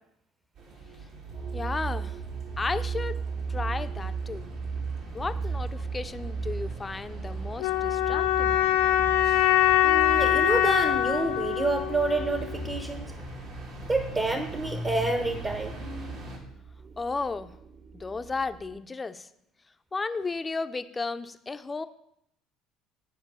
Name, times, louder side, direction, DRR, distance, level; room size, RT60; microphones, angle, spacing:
sound 1, 0.5-16.4, right 2 dB, 65° right, 2.4 m, -42 dB
sound 2, 1.3-18.8, right 5 dB, 50° right, 1.2 m, -37 dB
voice 1, 1.5-2.2 2.6-3.2 3.5-4.5 5.1-8.6 17.0-17.5 17.9-19.3 19.9-21.9, left 4 dB, 25° left, 10 dB, 0.6 m, -33 dB
sound 3, 7.6-12.6, left 13 dB, 85° left, 0.9 m, -23 dB
voice 2, 9.8-13.1 13.9-15.8, right 2 dB, 30° right, 7 dB, 1.1 m, -28 dB
9.6 x 4.6 x 6.9 m, 0.74 s
hypercardioid pair, 70°, 0 cm